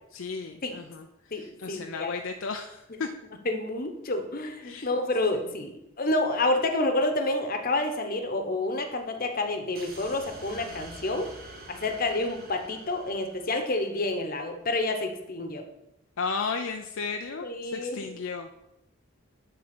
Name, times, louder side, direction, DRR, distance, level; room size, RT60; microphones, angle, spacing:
voice 1, 0.1-3.1 4.6-4.9 5.3-5.5 16.2-18.6, left 4 dB, 70° left, 4 dB, 0.5 m, -34 dB
voice 2, 1.3-2.1 3.4-11.3 11.7-15.6 17.4-18.0, left 2 dB, 45° left, 6 dB, 1.0 m, -29 dB
sound 1, 9.7-14.1, right 2 dB, 45° right, 1.5 m, -47 dB
11.0 x 3.8 x 6.0 m, 0.86 s
head